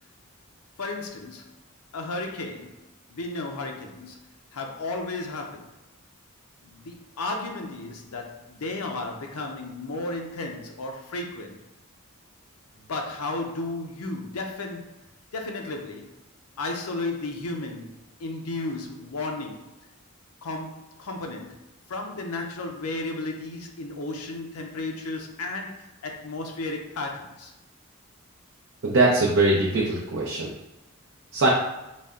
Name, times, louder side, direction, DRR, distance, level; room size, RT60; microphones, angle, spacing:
voice 1, 0.8-1.6 1.9-2.8 3.1-5.7 6.6-11.6 12.8-14.9 15.3-16.1 16.6-17.9 18.2-19.7 20.4-21.6 21.9-27.5, left 2 dB, 90° left, 2 dB, 0.6 m, -34 dB
voice 2, 28.8-30.5 31.3-31.5, right 2 dB, 60° right, -4 dB, 0.6 m, -21 dB
4.0 x 2.2 x 3.5 m, 0.96 s
head